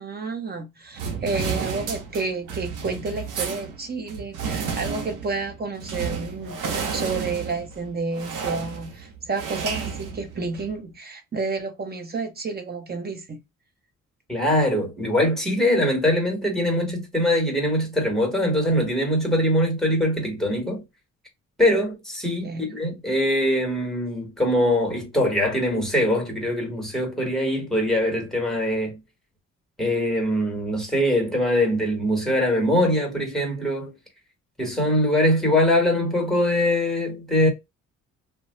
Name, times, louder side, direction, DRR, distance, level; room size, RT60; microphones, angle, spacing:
voice 1, 0.0-13.4 22.4-22.8, right 3 dB, 30° right, 1.0 m, -30 dB
sound 1, 1.0-10.8, right 6 dB, 90° right, 0.8 m, -32 dB
voice 2, 14.3-20.8 21.6-29.0 29.8-34.0 34.6-37.5, left 1 dB, ahead, 1.4 m, -22 dB
2.5 x 2.2 x 3.0 m
cardioid pair, 90°, 30 cm